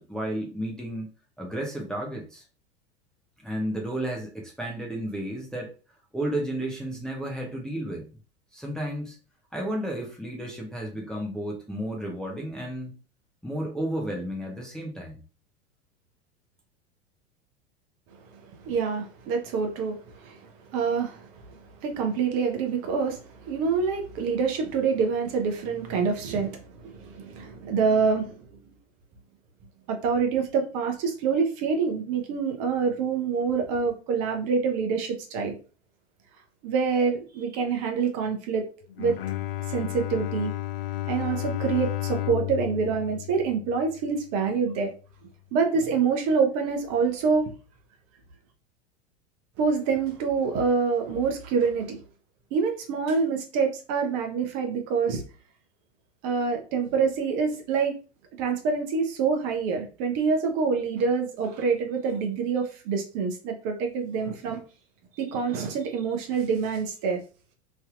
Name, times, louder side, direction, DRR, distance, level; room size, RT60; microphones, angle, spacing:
voice 1, 0.0-2.4 3.4-5.7 6.1-8.1 8.5-9.2 9.5-13.0 13.4-15.2, right 1 dB, ahead, -1 dB, 0.7 m, -32 dB
voice 2, 18.6-20.4 20.7-28.5 29.9-35.5 36.6-38.6 39.0-39.2 39.7-40.5 41.1-44.9 45.5-47.5 49.6-52.0 52.5-55.2 56.2-57.9 58.4-64.6 65.2-67.2, right 5 dB, 40° right, 4 dB, 0.8 m, -26 dB
Bowed string instrument, 38.9-44.2, left 14 dB, 55° left, 0.5 m, -32 dB
3.3 x 2.7 x 2.4 m, 0.35 s
figure-of-eight pair, 85°, 35 cm